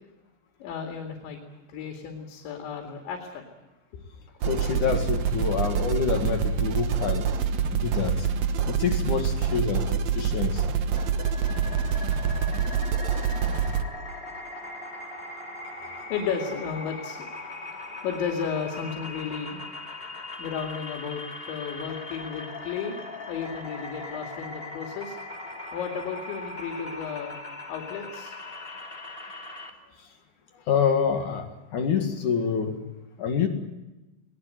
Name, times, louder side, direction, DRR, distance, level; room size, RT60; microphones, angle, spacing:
voice 1, 0.6-1.4 1.7-3.4 10.6-10.7 11.4-11.6 12.4-12.7 13.6-14.0 14.3-15.0 15.8-17.3 17.9-19.6 20.4-23.0 23.3-25.2 25.5-27.4 27.7-28.6 30.5-30.7, left 6 dB, 90° left, 2 dB, 4.8 m, -34 dB
voice 2, 4.4-7.3 7.7-8.3 8.7-10.6 30.0-30.1 30.7-32.8 33.2-33.5, left 6 dB, 50° left, 5 dB, 3.0 m, -27 dB
sound 1, 4.4-13.8, right 6 dB, 80° right, 1.6 m, -26 dB
sound 2, 11.0-29.7, left 2 dB, 20° left, 1.8 m, -39 dB
21.5 x 19.5 x 9.2 m, 1.0 s
omnidirectional pair, 5.1 m